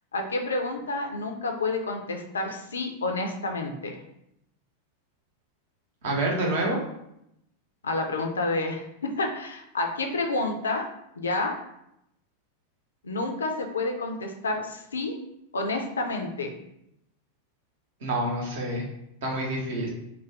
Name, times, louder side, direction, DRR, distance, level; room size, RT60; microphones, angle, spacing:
voice 1, 0.1-4.0 7.8-10.9 11.2-11.5 13.0-15.1 15.5-16.5, left 2 dB, 70° left, 3 dB, 0.4 m, -29 dB
voice 2, 6.0-6.8 18.0-18.8 19.2-19.9, right 1 dB, 55° right, -1 dB, 0.8 m, -27 dB
2.5 x 2.2 x 3.3 m, 0.80 s
figure-of-eight pair, 90°, 0 cm